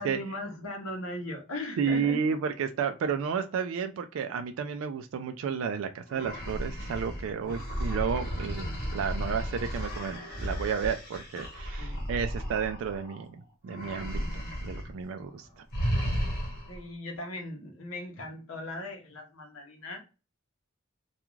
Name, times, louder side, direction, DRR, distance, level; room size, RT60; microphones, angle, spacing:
voice 1, 0.0-2.2 7.4-7.6 11.8-12.0 16.7-20.0, left 1 dB, 85° left, 0.7 m, -38 dB
voice 2, 1.8-13.3 13.6-14.2 14.6-15.6, right 6 dB, 75° right, 0.3 m, -32 dB
sound 1, 6.1-13.2 13.7-14.9 15.2-15.4 15.7-16.8, equal, 45° left, 0.9 m, -34 dB
2.4 x 2.3 x 3.0 m
head